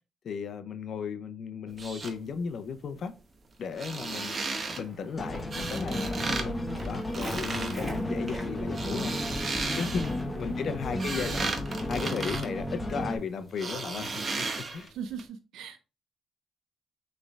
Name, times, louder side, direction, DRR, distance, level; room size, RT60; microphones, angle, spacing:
voice 1, 0.2-3.2 3.6-4.4 4.8-6.6 6.8-9.2 9.6-11.5 11.9-14.5 14.7-14.9, left 6 dB, 60° left, 0.5 m, -35 dB
sound 1, 1.7-2.1 3.7-4.8 5.5-6.5 6.7-7.8 8.6-10.2 10.7-13.2 13.6-14.9 15.2-15.3, right 3 dB, 40° right, 0.8 m, -34 dB
Walk footsteps, 3.7-11.1, equal, 20° right, 1.6 m, -46 dB
sound 2, 5.2-13.2, left 1 dB, 15° left, 1.0 m, -33 dB
voice 2, 14.9-15.8, right 7 dB, 80° right, 0.4 m, -39 dB
6.2 x 3.2 x 2.3 m
cardioid pair, 90°, 0 cm